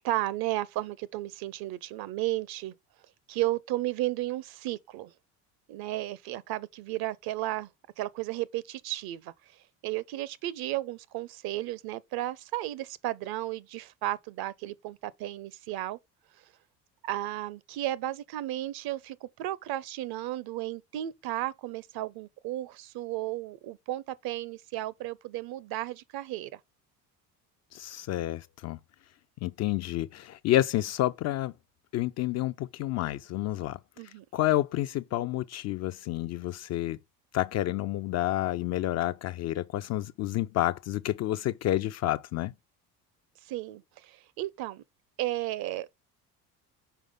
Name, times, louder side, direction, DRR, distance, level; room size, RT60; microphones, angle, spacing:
voice 1, 0.0-2.7 3.3-5.1 5.7-7.7 8.0-9.3 9.8-16.0 17.0-26.6 34.0-34.2 43.4-44.8 45.2-45.9, right 15 dB, 50° right, 0.7 m, -34 dB
voice 2, 27.7-28.8 29.4-31.5 31.9-37.0 37.3-42.5, left 14 dB, 35° left, 0.4 m, -29 dB
5.7 x 4.8 x 3.6 m
hypercardioid pair, 60°, 48 cm